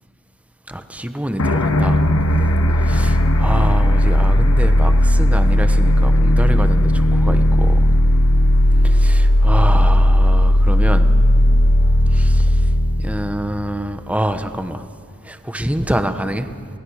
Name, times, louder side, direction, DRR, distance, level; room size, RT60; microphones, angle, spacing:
voice 1, 0.7-2.0 2.3-2.5 2.8-7.8 8.8-11.1 12.1-12.7 13.0-14.8 15.2-16.5, right 1 dB, 5° right, 8 dB, 1.0 m, -26 dB
sound 1, 1.4-14.1, left 1 dB, 75° left, 1.6 m, -15 dB
29.0 x 18.5 x 6.5 m, 2.2 s
head